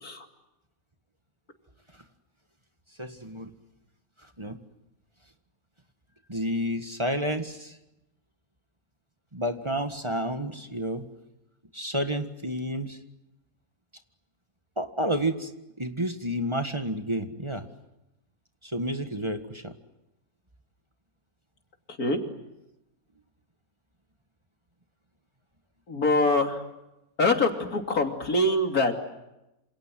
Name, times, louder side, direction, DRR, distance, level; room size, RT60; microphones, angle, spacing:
voice 1, 3.0-3.5 4.4-4.6 6.3-7.7 9.3-11.0 11.7-13.0 14.8-15.5 15.8-17.7 18.6-19.7, equal, 20° right, 6 dB, 1.8 m, -30 dB
voice 2, 25.9-26.6 27.2-28.9, left 2 dB, 90° left, 4 dB, 3.4 m, -24 dB
28.0 x 27.5 x 7.7 m, 0.91 s
omnidirectional pair, 1.5 m